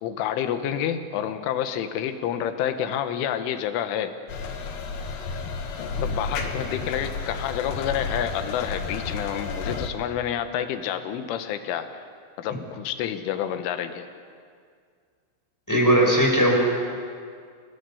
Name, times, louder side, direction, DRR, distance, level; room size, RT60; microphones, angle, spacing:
voice 1, 0.0-4.2 6.0-12.0 12.4-14.1, left 9 dB, 80° left, 8 dB, 3.7 m, -29 dB
sound 1, 4.3-9.9, left 4 dB, 60° left, 2.6 m, -32 dB
voice 2, 15.7-16.6, equal, 5° left, -2 dB, 5.4 m, -19 dB
29.0 x 19.0 x 7.2 m, 2.1 s
omnidirectional pair, 5.7 m